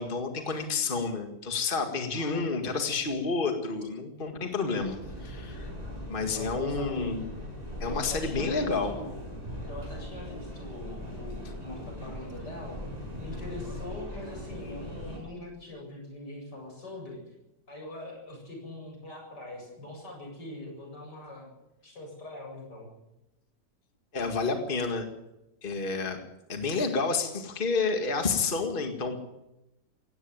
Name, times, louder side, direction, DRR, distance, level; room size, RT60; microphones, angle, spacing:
voice 1, 0.0-5.7 6.1-7.2 7.8-8.9 11.4-11.5 24.1-25.1 25.6-29.2, left 4 dB, 30° left, 5 dB, 2.0 m, -30 dB
voice 2, 2.1-2.5 6.4-7.2 7.9-9.2 9.7-12.8 13.2-17.2 17.7-21.5 21.8-22.9, left 2 dB, 80° left, 1 dB, 8.7 m, -42 dB
sound 1, 4.8-15.2, left 1 dB, 20° right, 6.2 m, -40 dB
18.0 x 16.0 x 9.0 m, 0.93 s
omnidirectional pair, 1.8 m